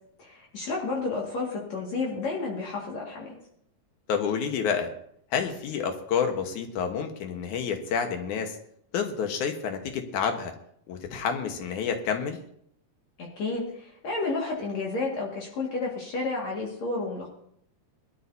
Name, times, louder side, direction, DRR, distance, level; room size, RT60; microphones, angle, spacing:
voice 1, 0.2-3.4 13.2-17.3, left 3 dB, 65° left, -3 dB, 3.2 m, -31 dB
voice 2, 4.1-4.9 5.3-8.6 8.9-10.5 10.9-12.4, left 7 dB, 80° left, 5 dB, 2.8 m, -29 dB
21.5 x 13.0 x 2.8 m, 0.68 s
omnidirectional pair, 3.4 m